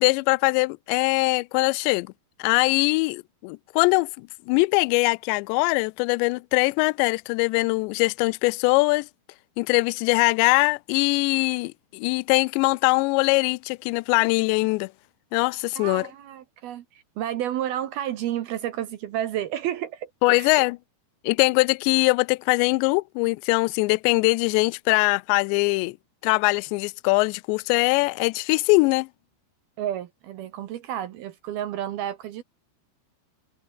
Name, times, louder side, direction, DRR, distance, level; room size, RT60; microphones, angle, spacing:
voice 1, 0.0-2.1 2.4-9.1 9.6-14.9 15.3-16.1 20.2-20.8 21.2-26.0 26.2-29.1, left 27 dB, 85° left, 2.6 m, -22 dB
voice 2, 15.8-20.5 29.8-32.4, right 11 dB, 70° right, 2.6 m, -31 dB
omnidirectional pair, 5.4 m